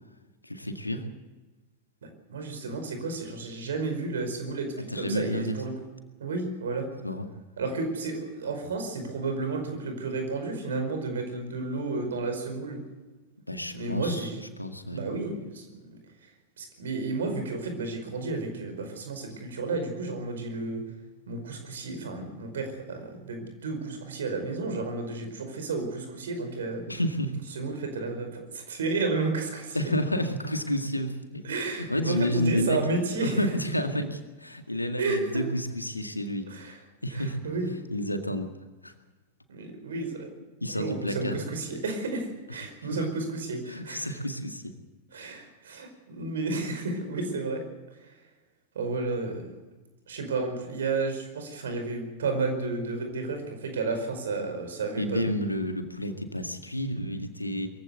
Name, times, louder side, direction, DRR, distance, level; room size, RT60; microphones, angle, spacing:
voice 1, 0.4-1.0 4.9-5.6 7.0-7.3 13.5-14.3 14.6-15.0 26.9-27.4 29.7-32.8 33.2-36.8 37.0-37.4 37.9-38.5 38.8-38.9 40.6-41.4 43.7-44.7 45.1-45.3 55.0-57.7, equal, 85° left, 6 dB, 2.1 m, -30 dB
voice 2, 2.0-5.7 6.2-6.9 7.6-12.8 13.7-14.4 14.9-15.7 16.6-20.8 21.3-26.8 27.5-29.9 31.4-33.4 35.0-35.4 36.5-36.8 37.1-37.7 39.5-40.3 40.7-44.1 45.1-47.6 48.0-48.1 48.7-49.5 50.1-55.4, right 3 dB, 65° right, 5 dB, 5.1 m, -32 dB
22.5 x 15.5 x 8.2 m, 1.2 s
figure-of-eight pair, 90°, 0 cm